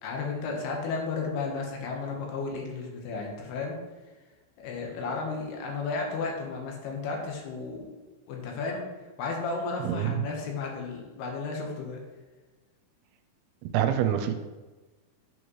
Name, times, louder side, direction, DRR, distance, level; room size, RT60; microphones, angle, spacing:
voice 1, 0.0-3.8 4.6-7.9 8.3-8.8 9.2-12.0, left 4 dB, 90° left, 0 dB, 3.2 m, -33 dB
voice 2, 9.8-10.2 13.7-14.3, right 10 dB, 80° right, 7 dB, 2.5 m, -26 dB
8.1 x 6.2 x 3.1 m, 1.2 s
omnidirectional pair, 4.5 m